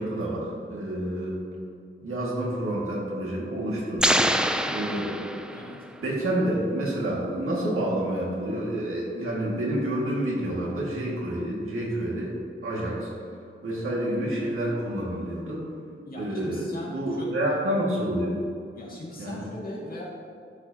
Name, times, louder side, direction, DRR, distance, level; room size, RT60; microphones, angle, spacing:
voice 1, 0.0-1.4 2.0-4.2 4.7-5.2 6.0-12.4 12.6-13.1 13.6-15.7 16.2-18.4 19.2-19.5, right 1 dB, 80° right, -4 dB, 2.0 m, -28 dB
sound 1, 4.0-5.9, equal, 5° right, 0.4 m, -25 dB
voice 2, 5.5-5.9 16.0-17.3 18.7-20.1, left 1 dB, 45° left, -4 dB, 2.1 m, -40 dB
12.0 x 7.5 x 2.9 m, 2.4 s
wide cardioid pair, 130°, 21 cm